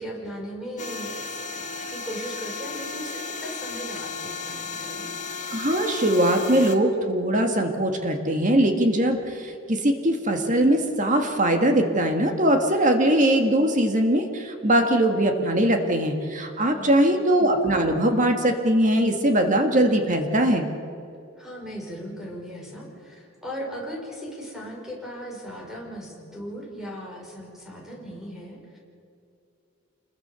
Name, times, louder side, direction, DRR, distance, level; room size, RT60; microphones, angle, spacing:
voice 1, 0.0-5.1 16.6-17.2 21.4-28.8, equal, ahead, -2 dB, 5.5 m, -38 dB
sound 1, 0.8-6.8, left 4 dB, 35° left, 1.7 m, -34 dB
voice 2, 5.5-20.7, right 1 dB, 35° right, 5 dB, 2.0 m, -21 dB
27.0 x 21.5 x 7.1 m, 2.5 s
head